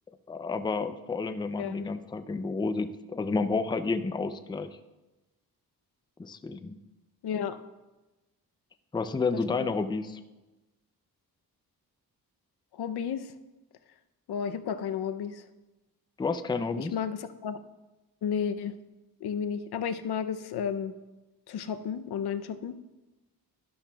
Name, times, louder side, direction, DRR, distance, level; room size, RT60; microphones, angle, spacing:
voice 1, 0.3-4.7 6.2-6.8 8.9-10.2 16.2-16.9, left 4 dB, 10° left, 9 dB, 0.4 m, -30 dB
voice 2, 1.6-1.9 7.2-7.6 9.3-9.7 12.7-13.3 14.3-15.4 16.8-17.6 18.2-18.7 19.2-20.9 21.5-22.8, left 7 dB, 85° left, 10 dB, 0.6 m, -32 dB
12.0 x 11.5 x 2.3 m, 1.1 s
wide cardioid pair, 115°, 38 cm